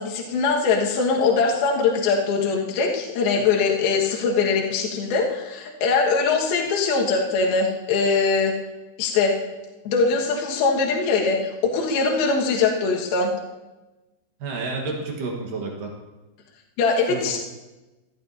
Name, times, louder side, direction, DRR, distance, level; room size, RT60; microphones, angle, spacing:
voice 1, 0.0-8.5 9.0-9.3 9.8-13.3 16.8-17.4, left 4 dB, 65° left, -1 dB, 3.0 m, -22 dB
voice 2, 14.4-15.9 17.1-17.2, right 3 dB, 65° right, 1 dB, 2.3 m, -30 dB
16.5 x 12.5 x 2.7 m, 1.1 s
omnidirectional pair, 5.5 m